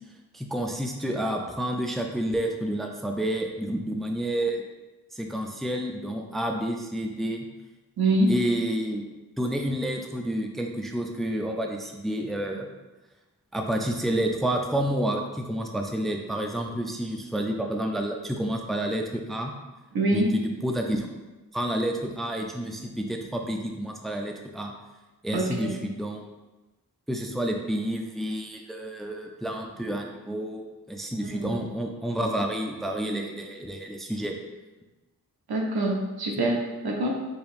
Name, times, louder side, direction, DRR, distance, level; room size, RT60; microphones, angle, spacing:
voice 1, 0.3-4.6 5.1-7.5 8.3-9.0 9.4-12.7 13.5-19.5 20.1-21.1 21.5-24.7 25.2-26.2 27.1-34.3, right 1 dB, ahead, 2 dB, 0.4 m, -29 dB
voice 2, 8.0-8.3 19.9-20.3 25.3-25.7 31.3-31.5 35.5-37.1, right 2 dB, 80° right, 0 dB, 0.8 m, -25 dB
5.0 x 2.9 x 2.5 m, 1.1 s
cardioid pair, 50°, 37 cm